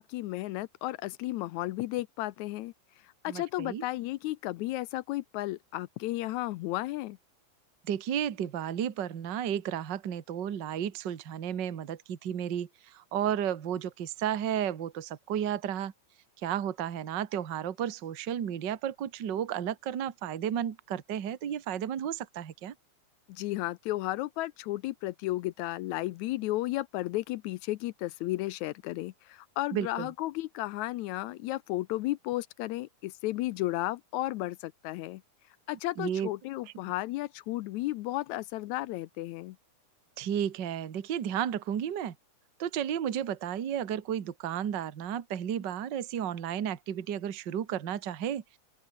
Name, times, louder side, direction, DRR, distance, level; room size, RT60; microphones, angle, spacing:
voice 1, 0.0-2.7 3.0-7.2 23.3-35.2 35.7-39.6, left 17 dB, 80° left, 1.9 m, -33 dB
voice 2, 3.3-3.8 7.9-15.9 16.4-22.7 29.7-30.1 36.0-36.3 40.2-42.2 42.6-48.4, right 9 dB, 45° right, 1.7 m, -33 dB
open air
omnidirectional pair, 3.5 m